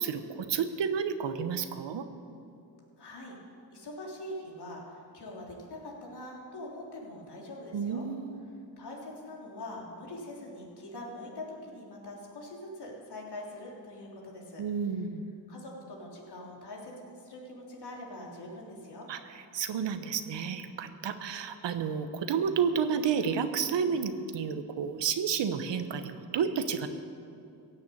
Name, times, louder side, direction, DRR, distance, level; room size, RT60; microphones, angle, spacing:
voice 1, 0.0-2.1 7.7-8.6 14.6-15.3 19.1-19.2 19.5-26.9, right 6 dB, 75° right, 9 dB, 1.1 m, -31 dB
voice 2, 3.0-3.4 3.7-8.1 8.8-14.6 15.5-19.1, left 1 dB, 60° left, -2 dB, 3.5 m, -43 dB
16.0 x 7.0 x 8.6 m, 2.7 s
cardioid pair, 75°, 44 cm